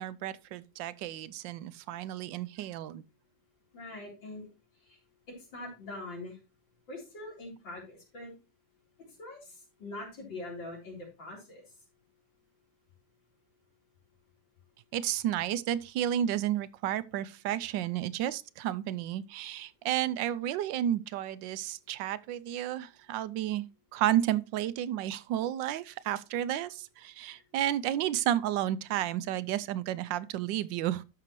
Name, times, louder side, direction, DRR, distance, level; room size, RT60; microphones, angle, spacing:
voice 1, 0.0-3.0 14.9-23.7 23.9-31.0, right 12 dB, 80° right, 1.3 m, -32 dB
voice 2, 3.7-4.5 4.8-5.0 5.5-6.4 6.9-8.3 9.2-11.6 27.3-27.4, left 2 dB, 90° left, 4.6 m, -43 dB
12.5 x 5.9 x 3.1 m
omnidirectional pair, 2.0 m